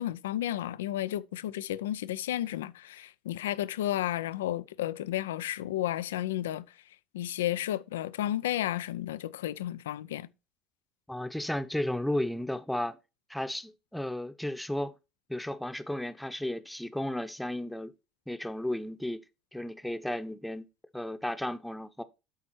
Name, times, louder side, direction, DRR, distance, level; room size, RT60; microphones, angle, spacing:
voice 1, 0.0-6.6 7.1-10.3, left 13 dB, 80° left, 0.4 m, -32 dB
voice 2, 11.1-13.0 13.3-14.9 15.3-17.9 18.3-19.2 19.5-20.7 20.9-22.0, left 1 dB, 5° left, 0.9 m, -34 dB
11.5 x 4.4 x 4.3 m
hypercardioid pair, 70°, 0 cm